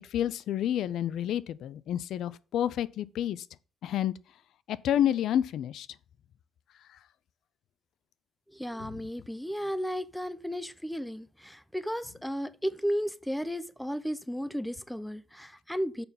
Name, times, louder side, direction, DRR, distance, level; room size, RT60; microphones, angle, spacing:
voice 1, 0.1-3.4 3.8-4.1 4.7-5.9, left 10 dB, 75° left, 0.5 m, -29 dB
voice 2, 8.5-16.0, equal, 5° left, 0.7 m, -34 dB
6.9 x 5.6 x 7.1 m
cardioid pair, 90°, 0 cm